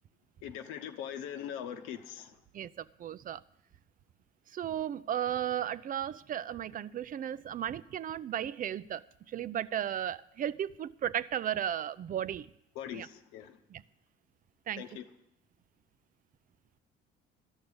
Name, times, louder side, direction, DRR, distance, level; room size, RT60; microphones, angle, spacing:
voice 1, 0.4-2.4 12.7-13.6 14.8-15.0, left 9 dB, 90° left, 1.0 m, -41 dB
voice 2, 2.5-3.4 4.5-12.5 12.9-13.1 13.7-13.8 14.7-14.8, right 10 dB, 45° right, 0.5 m, -35 dB
13.0 x 6.5 x 8.7 m
supercardioid pair, 90°, 20 cm